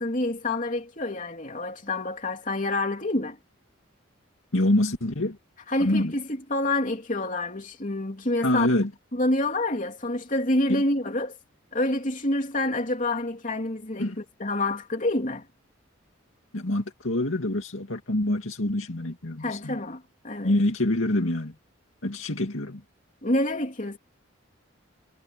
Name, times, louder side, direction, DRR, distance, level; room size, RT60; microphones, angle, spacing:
voice 1, 0.0-3.4 5.7-6.2 6.5-8.7 9.1-11.4 11.7-15.4 19.4-20.5 23.2-24.0, left 2 dB, 40° left, 3.2 m, -27 dB
voice 2, 4.5-5.4 5.8-6.1 8.4-8.9 10.7-10.8 14.0-14.2 16.5-19.8 20.4-21.5 22.0-22.8, left 1 dB, 80° left, 2.3 m, -26 dB
head